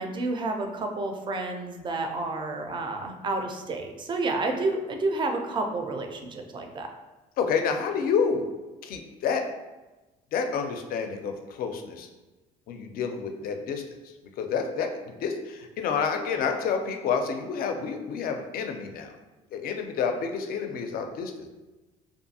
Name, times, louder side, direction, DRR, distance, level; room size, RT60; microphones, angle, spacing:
voice 1, 0.0-6.9, right 2 dB, 30° right, 4 dB, 0.4 m, -30 dB
voice 2, 7.4-8.5 8.8-9.4 10.3-12.1 12.7-13.8 14.4-14.9 15.2-19.1 19.5-21.5, left 6 dB, 60° left, 5 dB, 0.4 m, -29 dB
2.6 x 2.4 x 2.7 m, 1.1 s
cardioid pair, 110°, 17 cm